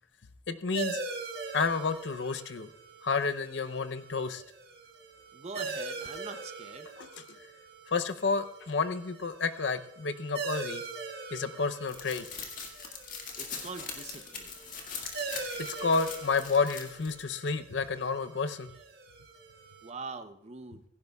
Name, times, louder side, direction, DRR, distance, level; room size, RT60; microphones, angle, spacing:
voice 1, 0.5-1.0 1.5-2.7 3.0-4.4 7.0-7.2 7.9-10.8 11.3-12.3 15.8-18.7, left 4 dB, 65° left, 11 dB, 0.7 m, -30 dB
sound 1, 0.7-19.9, right 4 dB, 55° right, 1.8 m, -42 dB
voice 2, 5.3-6.9 13.4-14.5 19.8-20.8, right 4 dB, 35° right, 9 dB, 0.7 m, -43 dB
sound 2, 11.9-17.2, left 5 dB, 45° left, 2.0 m, -42 dB
16.5 x 16.0 x 2.3 m, 0.73 s
head